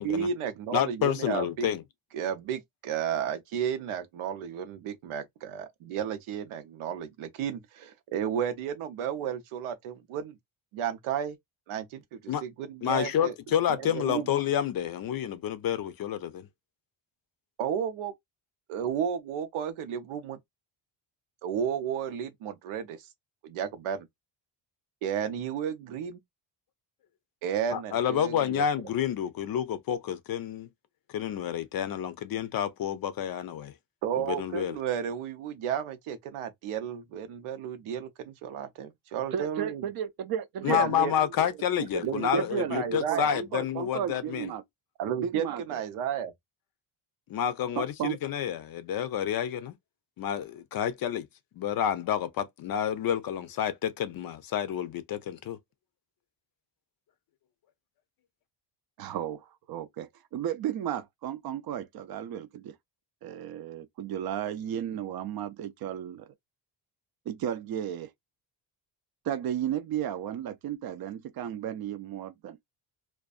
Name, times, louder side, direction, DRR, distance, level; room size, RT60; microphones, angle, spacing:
voice 1, 0.0-1.7 2.1-10.4 10.7-11.4 11.7-13.3 13.8-14.3 17.6-18.1 18.7-20.4 21.4-23.0 23.4-24.1 25.0-26.2 27.4-28.6 34.0-39.8 40.7-41.1 42.0-42.4 42.7-43.3 45.0-46.3, right 8 dB, 90° right, 0.7 m, -33 dB
voice 2, 0.7-1.8 12.3-12.4 12.8-16.5 27.7-30.7 31.1-33.7 34.3-34.8 40.6-44.5 47.3-49.7 50.2-51.3 51.6-55.6, left 9 dB, 50° left, 0.5 m, -29 dB
voice 3, 39.3-41.3 41.8-44.6 45.2-45.8 47.8-48.2 59.0-62.7 63.2-66.3 67.3-68.1 69.2-72.6, right 10 dB, 50° right, 0.5 m, -34 dB
2.5 x 2.2 x 2.3 m
cardioid pair, 135°, 48 cm